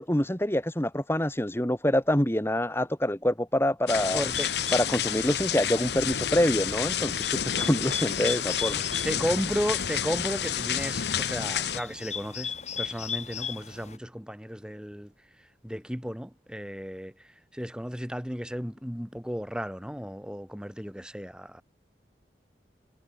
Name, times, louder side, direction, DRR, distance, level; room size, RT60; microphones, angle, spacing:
voice 1, 0.0-4.2 4.7-9.0, left 1 dB, 15° left, 2.1 m, -26 dB
sound 1, 3.9-11.8, left 9 dB, 70° left, 1.0 m, -30 dB
voice 2, 4.1-4.5 9.0-15.1 15.4-21.6, equal, 5° right, 5.6 m, -34 dB
Bird, 4.3-14.0, left 7 dB, 40° left, 6.9 m, -38 dB
head